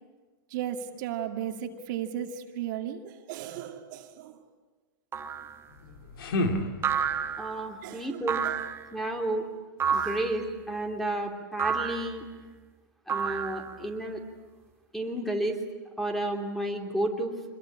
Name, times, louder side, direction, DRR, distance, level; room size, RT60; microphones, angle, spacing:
voice 1, 0.5-4.4 7.8-8.6 9.9-10.1, right 10 dB, 60° right, 4 dB, 2.2 m, -36 dB
sound 1, 5.1-5.5 6.8-7.6 8.3-8.9 9.8-10.3 11.6-12.1 13.1-13.8, right 7 dB, 20° right, 1.6 m, -29 dB
sound 2, 5.7-7.4, left 1 dB, 85° left, 2.7 m, -31 dB
voice 2, 7.4-8.4 8.9-9.4 9.9-12.3 13.1-14.2 14.9-15.6 16.0-17.3, right 1 dB, ahead, 4 dB, 3.1 m, -31 dB
26.0 x 21.5 x 8.9 m, 1.3 s
supercardioid pair, 135°, 11 cm